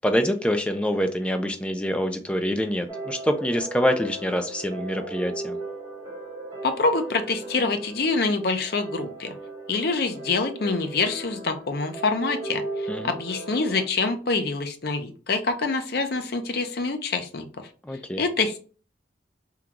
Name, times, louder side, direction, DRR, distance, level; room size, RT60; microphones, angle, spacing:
voice 1, 0.0-5.6 12.9-13.1 17.8-18.2, equal, 5° left, 6 dB, 0.3 m, -25 dB
sound 1, 2.9-13.8, right 2 dB, 20° right, 1.1 m, -37 dB
voice 2, 6.6-9.3 9.7-17.5 18.2-18.6, left 3 dB, 55° left, 7 dB, 0.5 m, -26 dB
3.7 x 2.3 x 2.9 m, 0.38 s
head